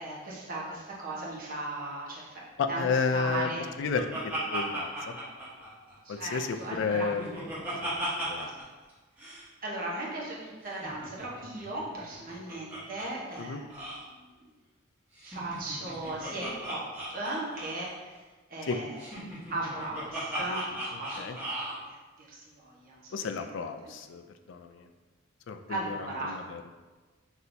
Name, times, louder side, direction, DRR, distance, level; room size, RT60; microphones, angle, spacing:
voice 1, 0.0-3.6 6.0-7.1 9.6-14.4 15.2-18.1 18.5-19.1 19.5-23.5 23.8-23.9 25.7-26.4, right 2 dB, 45° right, -5 dB, 0.9 m, -37 dB
voice 2, 2.6-3.5 3.8-4.0 4.5-5.1 6.1-7.9 8.2-8.5 13.4-13.6 18.7-18.8 21.2-21.4 23.1-24.2 24.5-24.8 25.5-26.6, left 5 dB, 65° left, 8 dB, 0.3 m, -32 dB
Laughter, 3.3-6.2 6.5-8.6 8.9-9.0 9.2-9.4 10.7-13.1 13.3-13.4 13.7-14.0 15.2-18.0 19.0-21.8, right 1 dB, 5° right, 1.0 m, -37 dB
6.0 x 2.7 x 2.6 m, 1.3 s
head